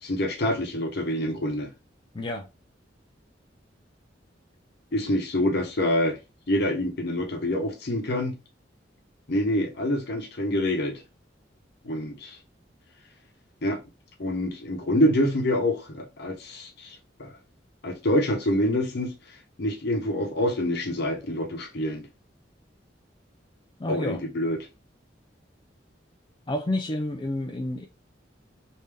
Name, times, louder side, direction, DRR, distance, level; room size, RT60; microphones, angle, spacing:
voice 1, 0.0-1.7 4.9-6.2 6.5-8.4 9.3-11.0 11.8-12.4 13.6-13.8 14.2-17.3 17.8-19.1 19.6-22.1 23.9-24.6, left 1 dB, 65° left, 0.9 m, -26 dB
voice 2, 2.1-2.5 23.8-24.2 26.5-27.9, left 1 dB, 25° left, 0.4 m, -29 dB
3.4 x 2.7 x 3.3 m
head